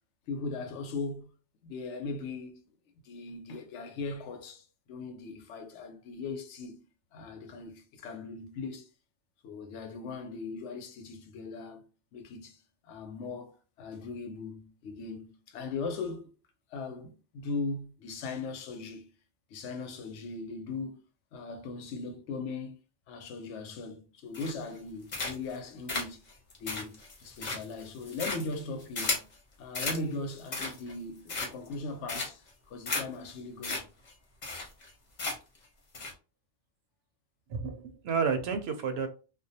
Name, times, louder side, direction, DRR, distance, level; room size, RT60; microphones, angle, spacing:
voice 1, 0.3-1.3 1.6-2.6 3.0-6.8 7.1-8.9 9.4-11.9 12.1-16.3 16.7-19.1 19.5-21.0 21.3-22.8 23.1-26.2 26.6-29.2 29.6-33.9, left 3 dB, 85° left, 0.9 m, -39 dB
sound 1, 24.3-24.8 25.1-25.6 25.9-29.3 29.7-30.0 30.4-30.9 31.3-31.7 32.1-32.5 32.9-33.0 33.3-33.4 33.6-33.8 34.1-34.2 34.4-34.9 35.2-35.6 35.9-36.1, left 3 dB, 45° left, 0.8 m, -34 dB
voice 2, 37.5-39.1, right 5 dB, 70° right, 0.8 m, -30 dB
2.3 x 2.1 x 2.7 m
omnidirectional pair, 1.2 m